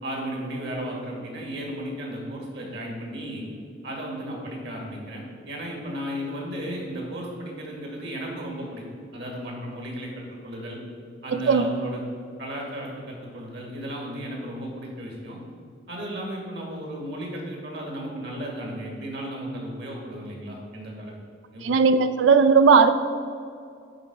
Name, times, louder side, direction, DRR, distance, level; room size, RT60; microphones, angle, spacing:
voice 1, 0.0-3.4 3.8-8.8 9.1-10.8 11.2-12.0 12.4-15.4 15.9-21.1 21.5-21.6, equal, 60° right, -1 dB, 2.2 m, -34 dB
voice 2, 21.6-22.9, right 5 dB, 80° right, 10 dB, 0.4 m, -17 dB
10.5 x 3.9 x 6.0 m, 2.3 s
head